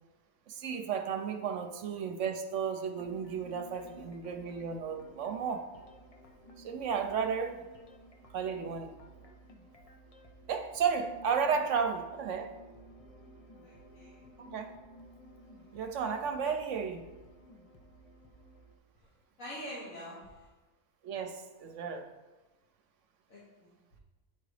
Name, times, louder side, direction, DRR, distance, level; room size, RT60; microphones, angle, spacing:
voice 1, 0.5-5.7 6.6-7.6 8.3-8.9 10.5-12.5 14.4-14.7 15.7-17.0 21.0-22.1, right 6 dB, 70° right, 6 dB, 0.9 m, -33 dB
sound 1, 3.0-18.8, equal, 40° left, 0.5 m, -54 dB
voice 2, 13.6-14.2 19.4-20.5 23.3-23.7, equal, 80° left, -8 dB, 1.9 m, -45 dB
9.2 x 3.9 x 4.8 m, 1.2 s
omnidirectional pair, 1.4 m